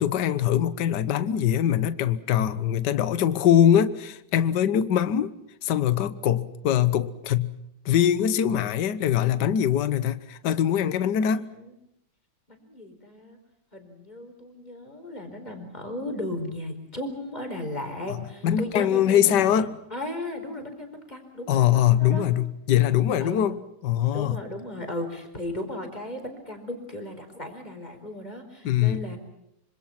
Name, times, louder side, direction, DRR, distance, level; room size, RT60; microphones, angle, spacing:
voice 1, 0.0-5.3 5.6-7.5 7.8-11.5 18.4-19.7 21.5-23.5 23.8-24.4 28.6-29.0, left 10 dB, 60° left, 1.6 m, -22 dB
voice 2, 11.0-11.7 12.5-13.4 13.7-22.3 23.2-23.5 24.1-29.2, left 1 dB, 20° left, 4.7 m, -36 dB
26.0 x 26.0 x 5.9 m
omnidirectional pair, 2.3 m